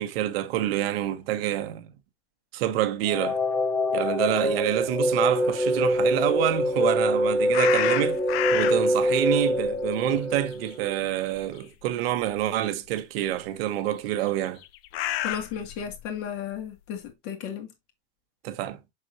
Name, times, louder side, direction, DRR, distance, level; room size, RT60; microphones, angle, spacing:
voice 1, 0.0-1.9 2.5-3.4 3.9-8.2 8.5-14.6 18.4-18.8, right 13 dB, 60° right, 1.2 m, -27 dB
sound 1, 3.0-11.0, equal, 5° left, 0.9 m, -25 dB
sound 2, 7.5-9.0 9.4-11.1 11.4-11.6 12.4-12.5 14.3-16.1, left 13 dB, 65° left, 0.8 m, -30 dB
voice 2, 15.2-17.7, left 8 dB, 45° left, 2.2 m, -34 dB
6.6 x 6.1 x 2.7 m
supercardioid pair, 160°, 33 cm